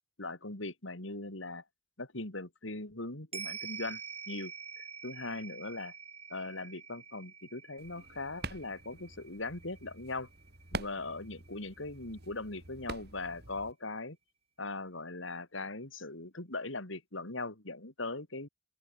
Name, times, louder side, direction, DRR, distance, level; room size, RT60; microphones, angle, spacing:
voice 1, 0.2-1.6 2.0-4.0 4.3-5.9 6.3-10.3 10.7-14.2 14.6-18.5, left 2 dB, 75° left, 3.4 m, -40 dB
sound 1, 3.3-11.9 12.2-12.3, right 6 dB, 30° right, 3.7 m, -47 dB
sound 2, 7.8-13.7, right 3 dB, 50° right, 3.0 m, -45 dB
open air
head